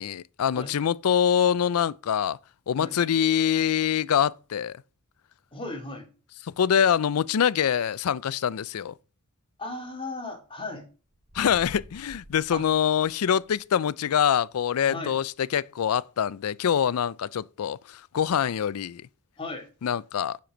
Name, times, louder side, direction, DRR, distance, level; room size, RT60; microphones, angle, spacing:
voice 1, 0.0-2.4 2.7-4.8 6.4-8.9 11.3-19.0 19.8-20.4, left 8 dB, 85° left, 0.4 m, -25 dB
voice 2, 5.5-6.1 9.6-10.9 12.5-12.6 14.9-15.1 19.4-19.6, left 2 dB, 25° left, 2.3 m, -35 dB
sound 1, 11.1-13.6, right 1 dB, 80° right, 3.3 m, -48 dB
7.6 x 6.7 x 6.0 m
head